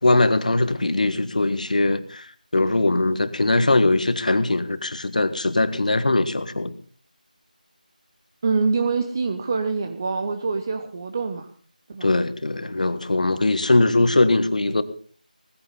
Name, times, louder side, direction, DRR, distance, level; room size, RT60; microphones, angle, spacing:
voice 1, 0.0-6.7 12.0-14.8, left 2 dB, 55° left, 1.6 m, -21 dB
voice 2, 8.4-11.5 11.9-12.1, right 4 dB, 25° right, 0.8 m, -25 dB
19.5 x 15.0 x 4.0 m
figure-of-eight pair, 170°, 5 cm